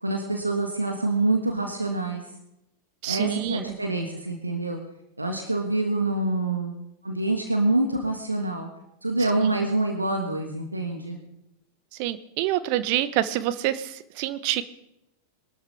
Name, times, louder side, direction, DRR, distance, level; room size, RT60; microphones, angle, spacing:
voice 1, 0.0-2.2 3.1-4.8 5.2-6.8 7.0-8.7 9.0-11.2, right 2 dB, 85° right, 3 dB, 1.7 m, -26 dB
voice 2, 3.0-3.8 9.4-9.5 12.0-14.6, right 13 dB, 45° right, 13 dB, 1.0 m, -27 dB
22.0 x 12.5 x 3.4 m, 0.84 s
figure-of-eight pair, 90°, 0 cm